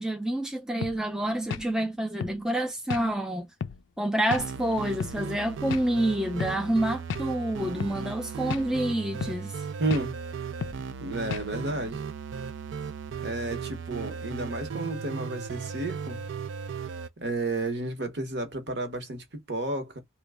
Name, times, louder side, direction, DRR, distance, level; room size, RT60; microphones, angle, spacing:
voice 1, 0.0-3.5 4.0-9.6, right 1 dB, 5° right, 0.3 m, -28 dB
sound 1, 0.8-1.0 1.5-1.7 2.2-2.4 2.9-3.1 3.6-3.8 4.3-4.5 5.0-5.2 5.7-5.9 6.4-6.6 7.1-7.3 7.8-8.0 8.5-8.7 9.2-9.4 9.9-10.1 10.6-10.8 11.3-11.5, left 6 dB, 75° left, 0.3 m, -33 dB
sound 2, 4.4-17.1, right 6 dB, 70° right, 0.4 m, -36 dB
voice 2, 9.8-10.2 11.0-12.0 13.2-16.2 17.2-20.0, right 2 dB, 55° right, 1.0 m, -32 dB
3.1 x 2.2 x 3.4 m
head